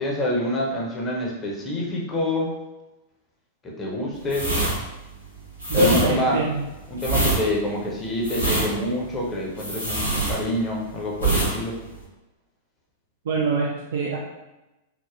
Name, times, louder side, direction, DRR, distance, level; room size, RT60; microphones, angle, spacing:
voice 1, 0.0-2.5 3.8-4.5 5.7-6.4 6.9-11.8, left 1 dB, 20° left, -3 dB, 0.6 m, -26 dB
sound 1, 4.3-10.8 11.1-11.5 11.8-12.0, right 2 dB, 90° right, 0.8 m, -25 dB
voice 2, 5.7-6.6 13.3-14.2, right 1 dB, 60° right, -2 dB, 0.3 m, -23 dB
3.4 x 2.1 x 2.4 m, 1.0 s
figure-of-eight pair, 95°, 0 cm